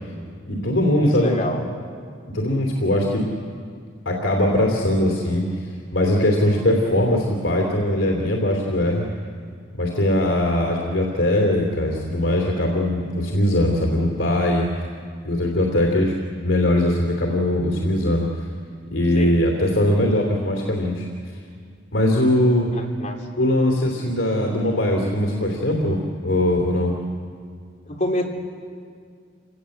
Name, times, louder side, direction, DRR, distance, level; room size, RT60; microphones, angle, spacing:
voice 1, 0.4-1.4 2.3-3.2 4.0-5.5 5.9-9.1 9.7-14.7 15.2-16.1 16.4-18.5 18.9-21.0 21.9-22.7 23.4-26.9, left 1 dB, 85° left, 0 dB, 3.1 m, -20 dB
voice 2, 1.0-1.6 19.2-19.3 22.7-23.2 27.9-28.2, left 1 dB, 40° left, 0 dB, 3.4 m, -26 dB
28.0 x 19.0 x 8.0 m, 2.1 s
head